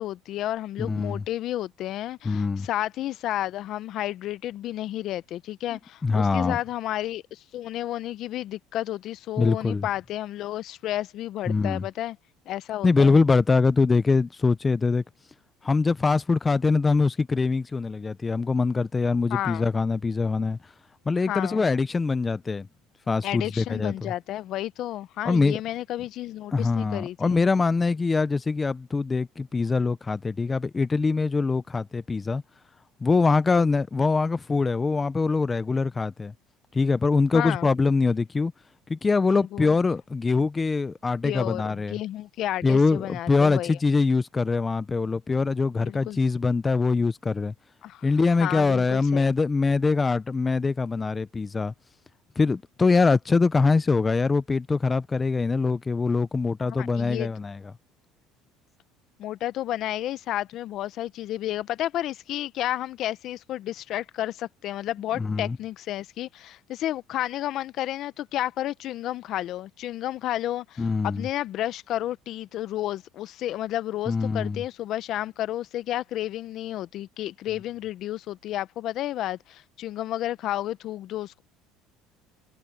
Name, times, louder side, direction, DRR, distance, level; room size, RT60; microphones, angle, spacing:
voice 1, 0.0-12.2 12.5-13.2 19.3-19.7 21.3-21.6 23.2-27.4 37.3-37.7 39.3-39.8 41.2-43.8 45.7-46.2 47.8-48.1 48.4-49.3 56.6-57.3 59.2-81.4, left 13 dB, 55° left, 0.7 m, -31 dB
voice 2, 0.9-1.2 2.2-2.7 6.0-6.6 9.4-9.9 11.5-11.8 12.8-15.0 15.6-20.6 21.1-22.7 23.1-24.1 25.2-25.6 26.5-32.4 33.0-36.3 36.7-38.5 38.9-42.0 42.6-47.5 48.0-51.7 52.4-57.6 65.2-65.6 70.8-71.3 74.1-74.6, left 4 dB, 20° left, 0.6 m, -23 dB
supercardioid pair, 105°, 0 cm